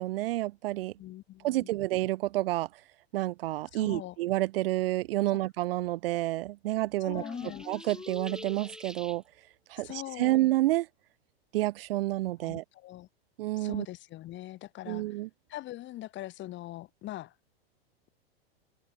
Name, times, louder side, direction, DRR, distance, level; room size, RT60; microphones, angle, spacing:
voice 1, 0.0-0.9 1.4-2.7 3.1-7.2 7.7-9.2 9.7-10.9 11.5-12.6 13.4-13.9 14.9-15.3, right 17 dB, 65° right, 1.1 m, -29 dB
voice 2, 1.0-1.7 3.7-4.2 5.3-5.4 7.0-7.7 9.8-10.4 12.4-13.1 13.6-15.2 15.5-17.3, left 15 dB, 35° left, 7.6 m, -42 dB
sound 1, 7.1-9.1, left 4 dB, 15° left, 7.6 m, -43 dB
sound 2, 7.2-9.2, right 1 dB, ahead, 1.9 m, -48 dB
hypercardioid pair, 120°, 31 cm